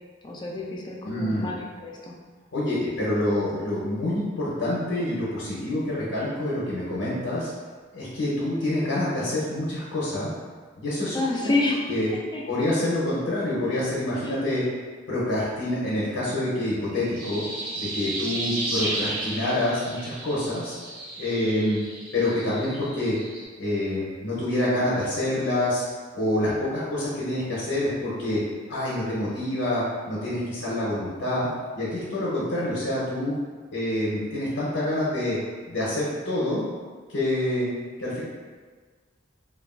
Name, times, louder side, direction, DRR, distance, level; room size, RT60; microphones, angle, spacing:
voice 1, 0.2-2.1 11.1-11.8 12.3-12.4 14.2-14.4, left 2 dB, 20° left, -2 dB, 0.3 m, -28 dB
voice 2, 1.1-1.5 2.5-7.5 7.9-10.3 10.8-11.5 11.9-12.1 12.5-14.6 15.1-17.4 17.8-20.7 21.2-21.8 22.1-23.2 23.6-25.8 26.1-28.4 28.7-31.5 31.8-33.3 33.7-35.4 35.7-36.6 37.1-37.7 38.0-38.2, left 1 dB, 80° left, -8 dB, 0.7 m, -27 dB
sound 1, 16.8-23.4, right 2 dB, 45° right, 0.5 m, -33 dB
3.0 x 2.3 x 2.3 m, 1.5 s
head